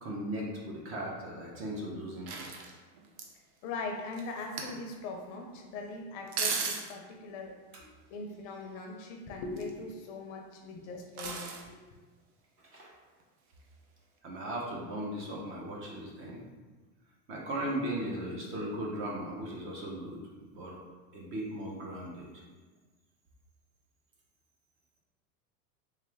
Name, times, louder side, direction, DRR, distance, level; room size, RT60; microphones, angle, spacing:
voice 1, 0.0-2.6 12.7-12.9 14.2-16.4 17.3-20.2 20.4-20.8 21.1-22.3, right 1 dB, 30° right, -2 dB, 0.7 m, -37 dB
sound 1, 2.3-3.3 4.1-4.8 6.3-6.9 9.4-9.9 11.2-11.7 13.2-13.3, right 5 dB, 80° right, 0.8 m, -35 dB
voice 2, 3.6-11.8, left 3 dB, 50° left, 3 dB, 0.6 m, -41 dB
3.5 x 3.2 x 3.4 m, 1.3 s
supercardioid pair, 150°, 44 cm